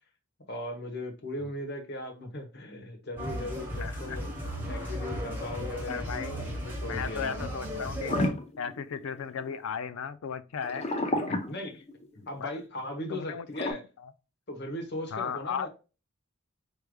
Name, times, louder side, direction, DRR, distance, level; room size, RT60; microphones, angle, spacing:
voice 1, 0.5-4.3 4.7-7.4 11.4-11.8 12.3-13.8 14.5-15.7, left 1 dB, 55° left, 1.0 m, -38 dB
sound 1, 3.2-8.3, equal, 10° right, 1.1 m, -35 dB
voice 2, 3.8-4.2 5.9-6.4 6.9-8.2 8.6-10.9 11.2-11.4 12.4-12.5 13.1-14.1 15.1-15.7, left 6 dB, 75° left, 0.4 m, -36 dB
sound 2, 8.1-9.5 10.6-12.2 13.5-13.7, left 1 dB, 30° left, 0.6 m, -31 dB
4.7 x 3.3 x 2.2 m
head